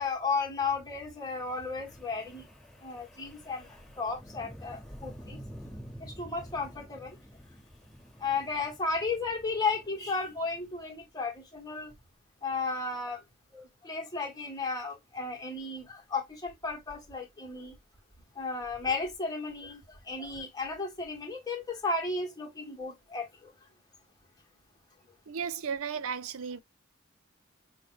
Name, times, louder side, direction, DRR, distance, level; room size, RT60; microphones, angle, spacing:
voice 1, 0.0-2.4 2.8-3.7 4.0-5.4 5.8-7.1 8.2-11.9 12.4-13.2 13.5-17.7 18.4-23.5, left 4 dB, 20° left, 1.4 m, -34 dB
Wind, 1.1-11.4, equal, ahead, 1.5 m, -51 dB
voice 2, 25.3-26.6, right 6 dB, 85° right, 0.5 m, -34 dB
6.2 x 2.2 x 3.2 m
head